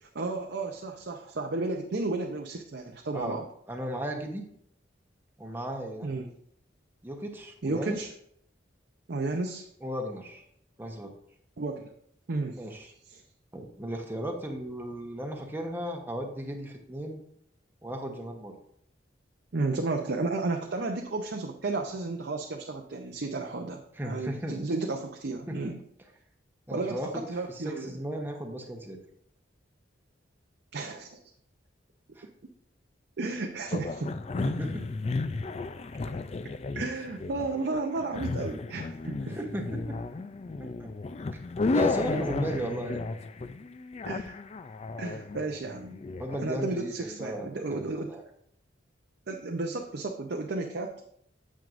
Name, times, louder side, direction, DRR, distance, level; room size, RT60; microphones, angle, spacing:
voice 1, 0.0-3.4 6.0-6.3 7.6-8.1 9.1-9.6 11.6-11.9 12.3-12.6 13.1-13.2 19.5-25.8 26.7-28.0 30.7-31.2 33.2-34.1 36.7-39.4 44.1-44.4 45.0-46.0 46.4-48.1 49.3-50.9, right 3 dB, 60° right, 2 dB, 0.6 m, -33 dB
voice 2, 3.7-4.5 5.4-6.1 7.0-8.0 9.8-10.4 10.8-11.1 12.6-12.9 13.5-17.2 17.8-18.5 24.0-24.6 25.5-25.8 26.7-27.2 27.5-29.0 32.2-32.3 34.4-34.9 39.3-40.0 40.6-40.9 41.3-41.4 41.7-43.0 46.2-47.8 48.1-48.2, right 1 dB, 10° right, 2 dB, 0.9 m, -35 dB
sound 1, 33.7-46.4, left 3 dB, 35° left, 0.3 m, -33 dB
9.2 x 7.4 x 2.5 m, 0.67 s
head